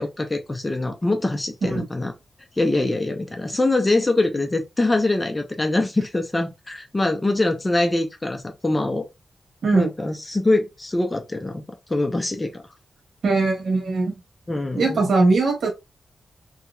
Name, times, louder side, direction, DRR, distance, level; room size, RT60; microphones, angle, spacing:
voice 1, 0.0-2.1 2.6-9.0 9.7-11.6 11.9-12.6 14.5-15.0, left 2 dB, 20° left, 0.6 m, -23 dB
voice 2, 13.2-14.1 14.8-15.7, right 3 dB, 75° right, 1.4 m, -20 dB
2.8 x 2.8 x 2.3 m
wide cardioid pair, 95°, 0 cm